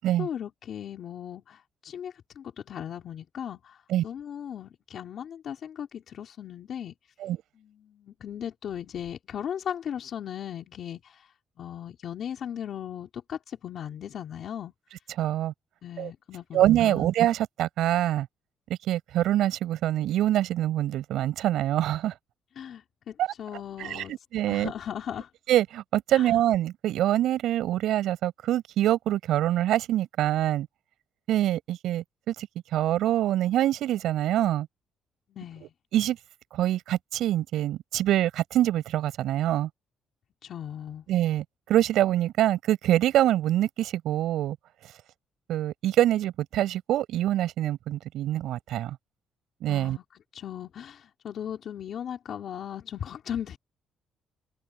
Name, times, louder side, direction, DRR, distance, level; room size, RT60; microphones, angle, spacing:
voice 1, 0.2-3.8 4.0-6.9 7.6-11.3 11.6-14.7 15.8-17.1 22.6-24.1 24.5-25.3 26.1-26.3 35.3-35.7 40.4-41.0 49.7-50.0 50.3-53.6, left 9 dB, 50° left, 4.7 m, -37 dB
voice 2, 15.2-15.5 16.0-16.1 16.5-18.3 18.9-22.1 23.2-23.3 23.8-24.7 25.5-30.7 31.3-34.7 35.6-36.2 36.5-39.7 41.1-44.6 45.5-49.0 49.6-50.0, right 13 dB, 75° right, 7.7 m, -25 dB
cardioid pair, 170°, 0 cm